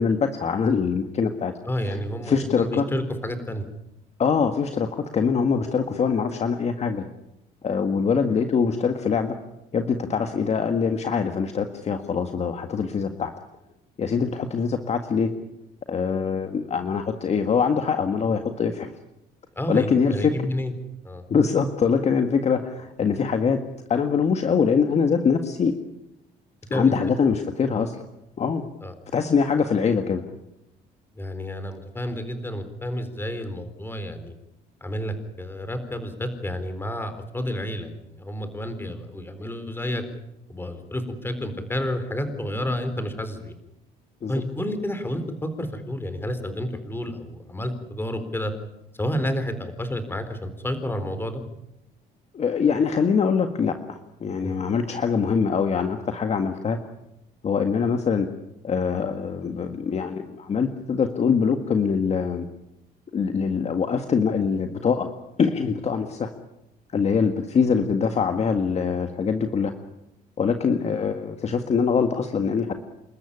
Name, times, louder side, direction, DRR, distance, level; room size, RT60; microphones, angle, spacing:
voice 1, 0.0-1.5 1.8-2.0 2.2-2.8 4.2-7.0 7.6-9.3 9.7-13.3 14.0-15.3 15.9-18.9 19.7-20.3 21.3-23.6 23.9-25.7 26.7-27.9 28.4-28.6 29.1-30.2 44.2-44.3 52.3-56.8 57.4-58.3 58.6-62.4 63.1-65.1 65.4-66.3 66.9-69.7 70.4-72.7, left 6 dB, 40° left, 6 dB, 1.8 m, -23 dB
voice 2, 1.7-3.7 19.6-20.7 21.0-21.2 26.7-26.9 28.8-28.9 31.2-34.3 34.8-40.0 40.5-43.5 44.3-48.5 49.0-51.4 54.4-54.5, equal, 15° left, 9 dB, 4.0 m, -30 dB
29.0 x 13.5 x 9.9 m, 0.87 s
cardioid pair, 110°, 17 cm